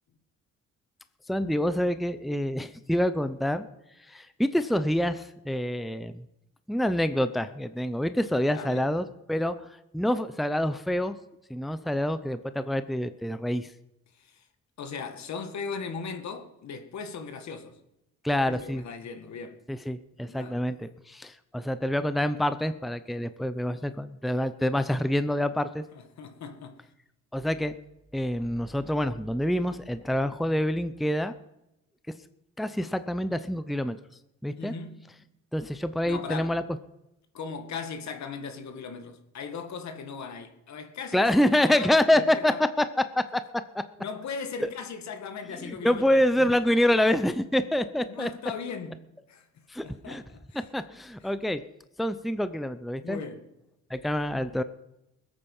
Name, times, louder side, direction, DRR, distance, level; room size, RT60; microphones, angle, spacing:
voice 1, 1.3-3.7 4.1-6.2 6.7-9.5 9.9-11.1 11.5-13.7 18.2-18.8 19.7-25.8 27.3-27.7 28.1-31.3 32.6-34.0 34.4-34.7 35.5-36.6 41.1-42.8 43.1-43.4 43.7-43.8 44.6-44.7 45.6-48.3 49.7-50.2 50.7-51.6 52.0-53.2 53.9-54.6, left 1 dB, ahead, 0.7 m, -26 dB
voice 2, 8.5-8.9 14.2-14.5 14.8-17.8 18.5-19.6 20.2-20.6 25.9-26.8 34.6-35.1 36.1-36.6 37.3-41.9 42.1-42.6 44.0-46.6 48.1-49.4 49.8-50.6 53.0-53.5, left 5 dB, 65° left, 2.0 m, -38 dB
21.0 x 8.8 x 5.5 m
cardioid pair, 90°, 30 cm